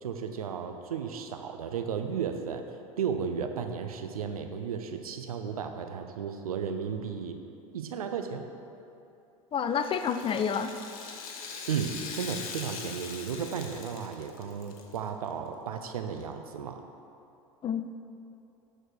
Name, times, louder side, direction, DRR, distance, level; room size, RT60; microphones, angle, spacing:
voice 1, 0.0-2.7 3.0-7.4 7.7-8.5 11.7-16.8, right 7 dB, 80° right, 6 dB, 0.7 m, -34 dB
voice 2, 9.5-10.7 17.6-17.8, left 7 dB, 30° left, 9 dB, 0.5 m, -28 dB
Rattle (instrument), 9.7-15.0 15.3-15.4 16.2-16.3, left 5 dB, 70° left, 1.0 m, -41 dB
13.0 x 4.4 x 4.7 m, 2.7 s
hypercardioid pair, 80°, 18 cm